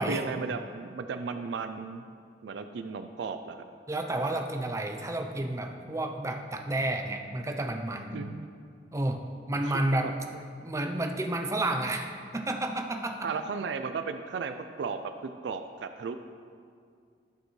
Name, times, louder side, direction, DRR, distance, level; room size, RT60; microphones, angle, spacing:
voice 1, 0.1-2.0 2.4-3.6 8.1-8.5 9.9-10.4 13.2-15.1 15.4-16.2, right 5 dB, 70° right, 8 dB, 0.4 m, -35 dB
voice 2, 3.9-8.1 8.9-10.1 10.6-13.3, right 1 dB, 15° right, 4 dB, 0.5 m, -31 dB
12.0 x 6.6 x 3.1 m, 2.2 s
head